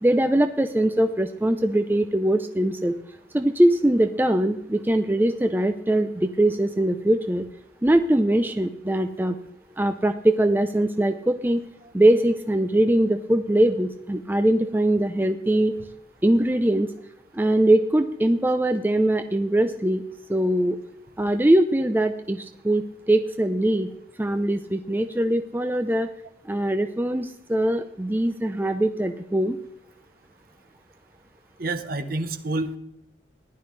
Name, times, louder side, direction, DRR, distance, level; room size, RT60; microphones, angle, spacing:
voice 1, 0.0-3.0 3.3-7.5 7.8-9.4 9.8-11.6 11.9-15.7 16.2-16.9 17.3-20.0 20.3-20.8 21.2-23.9 24.2-26.1 26.4-29.6, right 1 dB, 10° right, 8 dB, 0.5 m, -22 dB
voice 2, 31.6-32.8, right 2 dB, 50° right, 10 dB, 1.0 m, -28 dB
15.0 x 11.5 x 3.2 m, 0.81 s
head